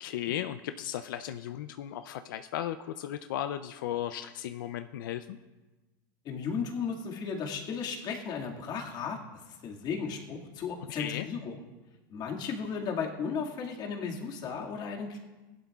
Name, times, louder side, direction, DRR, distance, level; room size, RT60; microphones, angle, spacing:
voice 1, 0.0-5.4 10.9-11.3, left 11 dB, 85° left, 10 dB, 0.5 m, -36 dB
voice 2, 6.2-9.2 9.6-11.6 12.1-15.2, left 6 dB, 40° left, 0 dB, 2.0 m, -35 dB
17.0 x 12.0 x 2.4 m, 1.2 s
supercardioid pair, 130°, 11 cm